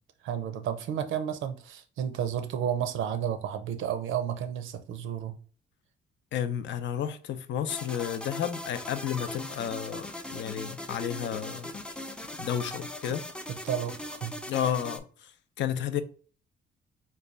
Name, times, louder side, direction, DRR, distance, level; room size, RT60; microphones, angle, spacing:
voice 1, 0.2-5.4 13.6-14.4, right 9 dB, 80° right, 0.6 m, -32 dB
voice 2, 6.3-11.7 12.4-13.3 14.5-16.0, left 9 dB, 65° left, 0.5 m, -32 dB
sound 1, 7.7-15.0, left 1 dB, 5° left, 0.3 m, -40 dB
3.2 x 2.3 x 3.8 m
cardioid pair, 90°, 20 cm